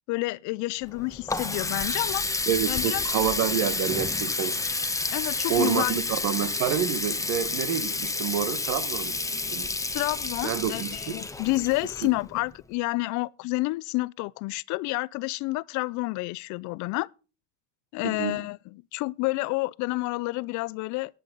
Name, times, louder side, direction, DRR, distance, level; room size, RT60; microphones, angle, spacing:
voice 1, 0.1-2.4 2.7-3.0 5.1-6.0 9.9-17.1 17.9-21.2, left 22 dB, 65° left, 0.5 m, -29 dB
Water tap faucet, 0.8-12.5, left 3 dB, 10° left, 1.2 m, -30 dB
voice 2, 2.5-4.6 5.5-9.7 10.4-10.9 18.0-18.4, right 10 dB, 65° right, 1.5 m, -28 dB
14.0 x 10.0 x 3.9 m
supercardioid pair, 105°, 32 cm